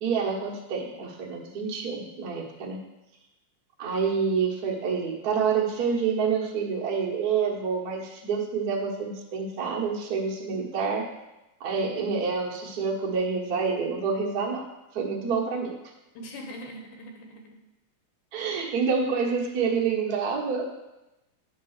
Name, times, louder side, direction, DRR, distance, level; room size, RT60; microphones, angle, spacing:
voice 1, 0.0-2.8 3.8-11.0 11.6-14.6 14.9-15.7 18.3-20.7, right 5 dB, 75° right, -2 dB, 0.8 m, -27 dB
voice 2, 16.2-17.6, equal, 75° left, 3 dB, 2.4 m, -41 dB
8.9 x 3.7 x 6.5 m, 0.97 s
omnidirectional pair, 3.8 m